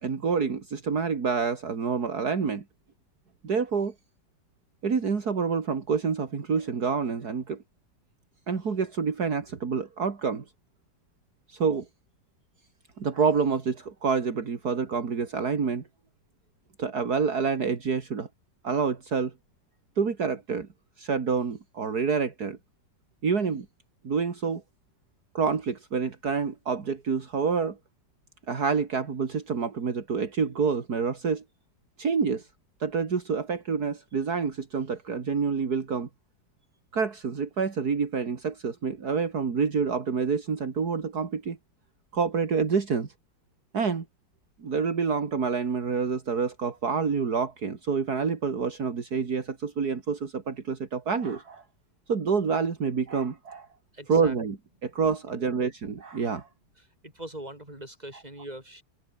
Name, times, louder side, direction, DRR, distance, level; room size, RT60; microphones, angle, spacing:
voice 1, 0.0-2.6 3.4-3.9 4.8-7.6 8.5-10.4 11.5-11.9 13.0-15.8 16.8-18.3 18.6-19.3 20.0-20.7 21.0-22.6 23.2-23.7 24.0-24.6 25.3-27.8 28.5-31.4 32.0-32.5 32.8-36.1 36.9-41.6 42.1-43.1 43.7-44.0 44.6-51.6 52.1-53.7 54.1-54.6 54.8-56.5, right 5 dB, 65° right, 2.8 m, -27 dB
voice 2, 53.9-54.4 55.3-55.6 56.8-58.8, right 1 dB, 25° right, 7.9 m, -42 dB
omnidirectional pair, 1.8 m